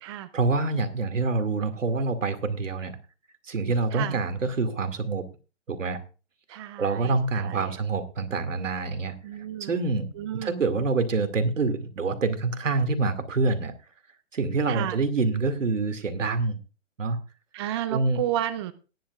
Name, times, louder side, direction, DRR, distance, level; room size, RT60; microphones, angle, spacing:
voice 1, 0.3-2.9 3.4-5.2 5.7-6.0 6.5-9.2 9.6-10.1 10.4-13.7 14.3-16.6 17.0-17.2 17.9-18.2, right 3 dB, 80° right, 9 dB, 2.2 m, -26 dB
voice 2, 3.9-4.2 6.5-7.7 9.2-9.8 10.2-10.6 14.7-15.0 17.5-18.7, right 12 dB, 20° right, 12 dB, 0.5 m, -32 dB
18.5 x 10.5 x 2.4 m, 0.33 s
hypercardioid pair, 140°, 37 cm